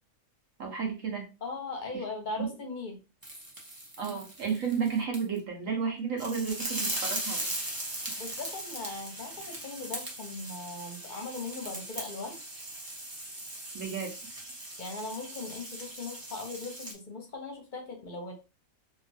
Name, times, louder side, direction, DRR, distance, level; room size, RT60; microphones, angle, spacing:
voice 1, 0.6-1.3 1.9-2.0 2.4-2.5 4.0-7.5 13.7-14.1, right 6 dB, 65° right, 1 dB, 1.1 m, -32 dB
voice 2, 1.4-3.0 8.2-12.3 14.8-18.3, left 3 dB, 45° left, 2 dB, 0.7 m, -39 dB
sound 1, 3.2-5.4 6.2-16.9, right 1 dB, 35° right, 0.3 m, -39 dB
2.9 x 2.4 x 2.6 m, 0.30 s
omnidirectional pair, 1.5 m